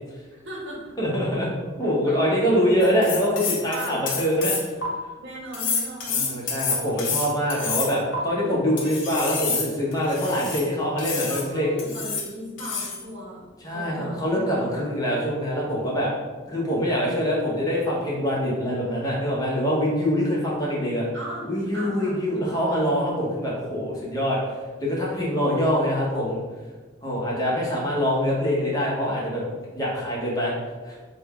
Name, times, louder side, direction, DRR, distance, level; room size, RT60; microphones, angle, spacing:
voice 1, 0.3-1.0 2.0-2.2 2.8-2.9 3.7-4.1 5.2-6.6 7.6-7.8 11.3-14.9 21.1-21.5 21.7-22.6, right 1 dB, 60° right, -5 dB, 0.8 m, -38 dB
voice 2, 1.0-1.5 1.8-4.5 6.2-11.8 13.6-16.1 16.5-21.1 21.5-26.4 27.0-30.5 30.8-31.0, equal, 20° left, -5 dB, 0.7 m, -24 dB
sound 1, 2.8-4.9 5.5-8.2 8.8-10.6 11.0-11.5 11.8-12.3 12.6-13.0, left 5 dB, 75° left, 0.7 m, -28 dB
3.4 x 2.2 x 3.4 m, 1.3 s
head